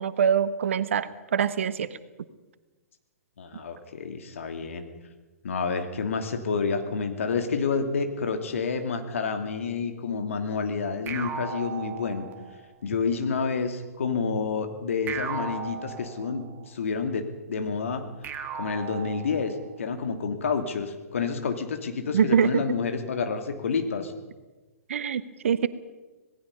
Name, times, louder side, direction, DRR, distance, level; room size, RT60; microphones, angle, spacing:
voice 1, 0.0-1.9 22.1-22.6 24.9-25.7, right 7 dB, 55° right, 14 dB, 1.1 m, -24 dB
voice 2, 3.4-4.8 5.4-12.3 12.8-18.1 18.5-24.1, left 5 dB, 60° left, 6 dB, 2.7 m, -29 dB
sound 1, 11.1-12.7 15.1-16.7 18.2-19.7, right 6 dB, 20° right, 1.9 m, -36 dB
26.5 x 18.5 x 5.5 m, 1.2 s
figure-of-eight pair, 115°, 8 cm